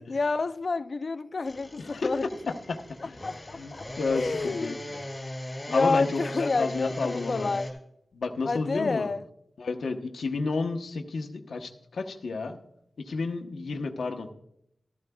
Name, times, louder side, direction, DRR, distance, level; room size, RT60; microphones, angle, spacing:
voice 1, 0.0-2.3 3.0-3.8 4.1-4.8 5.7-7.7 8.5-9.2, left 3 dB, 45° left, 0.4 m, -29 dB
sound 1, 1.4-7.7, left 1 dB, 15° left, 3.4 m, -39 dB
voice 2, 1.8-2.1 2.5-2.8 3.0-3.1 3.5-5.0 5.7-7.5 8.1-9.1 9.6-12.6 13.0-14.3, left 3 dB, 85° left, 0.9 m, -31 dB
14.5 x 12.5 x 2.3 m
wide cardioid pair, 135°, 0 cm